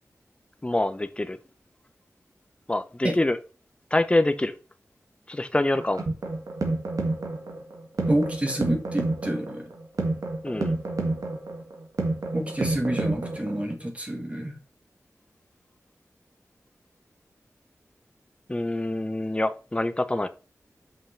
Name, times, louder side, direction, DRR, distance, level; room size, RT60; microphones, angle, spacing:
voice 1, 0.6-1.4 2.7-3.4 3.9-4.6 5.3-6.0 10.4-10.8 18.5-20.3, left 1 dB, 20° left, 0.7 m, -25 dB
sound 1, 5.7-13.7, right 2 dB, 85° right, 1.7 m, -29 dB
voice 2, 8.1-9.7 12.3-14.6, right 1 dB, 20° right, 1.6 m, -28 dB
5.7 x 5.5 x 5.6 m
wide cardioid pair, 85°, 6 cm